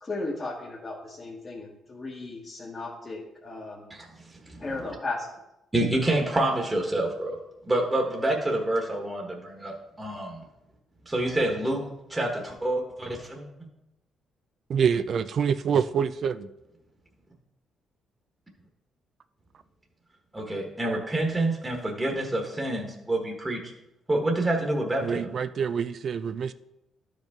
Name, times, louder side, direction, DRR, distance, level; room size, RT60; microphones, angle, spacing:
voice 1, 0.0-3.9 4.6-5.3, left 2 dB, 30° left, -3 dB, 1.3 m, -35 dB
voice 2, 3.9-4.6 5.7-7.4 7.7-10.4 11.1-11.8 12.1-13.4 20.3-23.6 24.1-25.3, right 1 dB, 15° right, 0 dB, 1.3 m, -27 dB
voice 3, 14.7-16.5 25.0-26.5, right 7 dB, 55° right, 12 dB, 0.4 m, -26 dB
12.0 x 5.2 x 3.6 m, 0.90 s
cardioid pair, 90°, 0 cm